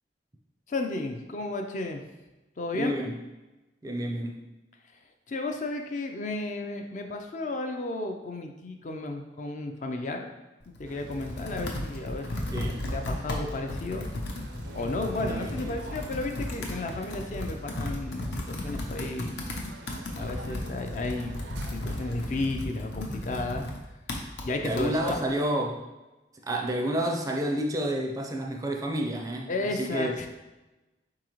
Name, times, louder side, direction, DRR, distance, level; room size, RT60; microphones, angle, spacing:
voice 1, 0.7-2.1 2.6-2.9 5.3-10.3 10.8-12.3 12.9-14.1 14.7-19.4 20.1-21.4 21.7-23.7 24.4-25.2 29.5-30.3, left 2 dB, 45° left, 4 dB, 0.4 m, -33 dB
voice 2, 2.7-3.2 3.8-4.4 12.5-12.8 15.2-15.7 24.6-25.9 26.4-30.1, right 1 dB, 20° right, 1 dB, 0.4 m, -30 dB
Computer keyboard, 10.6-25.2, left 1 dB, 80° left, 0.7 m, -35 dB
sound 1, 10.8-22.4, right 3 dB, 80° right, 0.4 m, -49 dB
4.7 x 3.7 x 3.0 m, 1.1 s
head